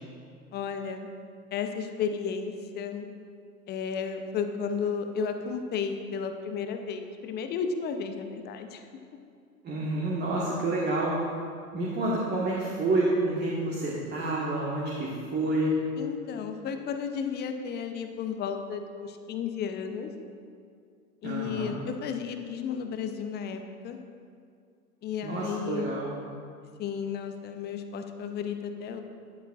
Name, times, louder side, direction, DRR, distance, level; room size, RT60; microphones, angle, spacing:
voice 1, 0.5-1.1 1.5-3.1 3.7-8.8 16.0-20.1 21.2-24.0 25.0-25.9 26.8-29.0, left 6 dB, 20° left, 6 dB, 0.6 m, -33 dB
voice 2, 9.6-11.2 11.7-15.7 21.2-21.8 25.2-26.2, right 2 dB, 20° right, -4 dB, 1.4 m, -29 dB
12.5 x 10.5 x 2.4 m, 2.3 s
figure-of-eight pair, 95°, 46 cm